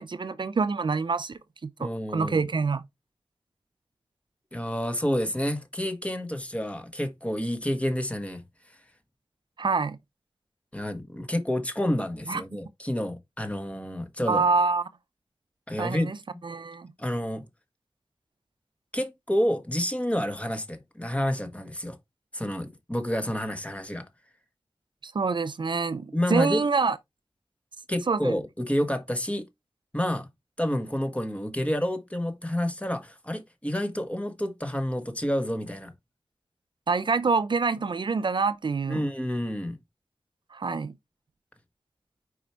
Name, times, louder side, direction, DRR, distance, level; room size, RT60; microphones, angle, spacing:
voice 1, 0.0-2.8 9.6-10.0 12.3-12.4 14.3-14.8 15.8-16.2 16.4-16.9 25.0-27.0 28.1-28.4 36.9-39.0 40.5-40.9, right 4 dB, 65° right, 0.5 m, -26 dB
voice 2, 1.8-2.5 4.5-8.4 10.7-14.4 15.7-16.1 17.0-17.4 18.9-22.0 22.3-24.1 26.1-26.6 27.9-29.4 29.9-30.3 30.6-35.9 38.9-39.8, equal, 15° left, 1.4 m, -29 dB
5.0 x 4.8 x 4.4 m
wide cardioid pair, 60°, 9 cm